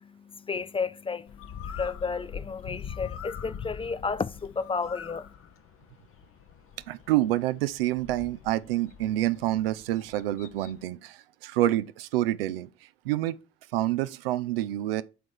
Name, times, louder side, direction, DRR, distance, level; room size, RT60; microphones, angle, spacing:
voice 1, 0.0-5.3, left 5 dB, 20° left, 0.4 m, -32 dB
Bird, 1.3-10.8, left 8 dB, 45° left, 0.8 m, -43 dB
voice 2, 6.9-12.7 13.0-13.4 13.7-15.0, right 14 dB, 75° right, 0.5 m, -27 dB
8.0 x 3.7 x 4.6 m
figure-of-eight pair, 45°, 29 cm